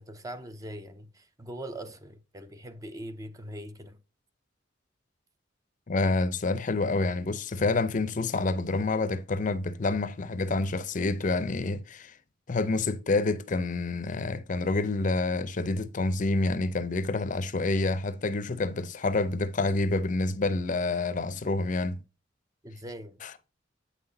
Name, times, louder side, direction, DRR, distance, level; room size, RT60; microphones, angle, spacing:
voice 1, 0.0-4.0 22.6-23.2, right 1 dB, 20° right, 0.5 m, -41 dB
voice 2, 5.9-12.2 12.5-22.0 23.2-23.3, left 3 dB, 40° left, 0.5 m, -28 dB
8.4 x 5.8 x 2.7 m
head